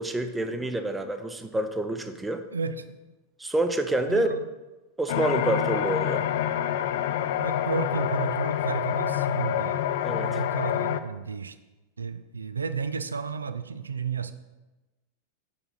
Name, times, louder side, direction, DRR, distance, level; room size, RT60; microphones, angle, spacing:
voice 1, 0.0-2.4 3.4-4.3 5.0-6.3 10.0-10.4, right 1 dB, 10° right, 8 dB, 0.6 m, -27 dB
voice 2, 2.5-2.9 4.1-4.5 7.4-9.9 10.1-11.6 12.0-14.3, right 5 dB, 75° right, 11 dB, 0.4 m, -32 dB
sound 1, 5.1-11.0, left 11 dB, 55° left, 0.3 m, -27 dB
6.7 x 5.5 x 4.0 m, 1.1 s
figure-of-eight pair, 90°, 0 cm